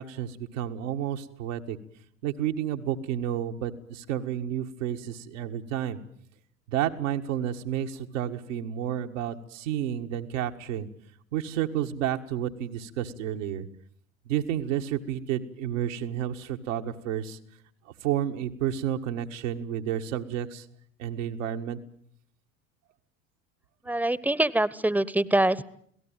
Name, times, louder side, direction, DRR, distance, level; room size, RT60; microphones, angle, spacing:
voice 1, 0.0-1.8 2.2-6.0 6.7-10.9 11.3-13.7 14.2-17.4 18.0-20.6 21.0-21.8, right 10 dB, 70° right, 5 dB, 1.8 m, -31 dB
voice 2, 23.9-25.6, right 1 dB, 5° right, 20 dB, 1.1 m, -24 dB
27.0 x 18.0 x 9.0 m, 0.67 s
figure-of-eight pair, 70°, 39 cm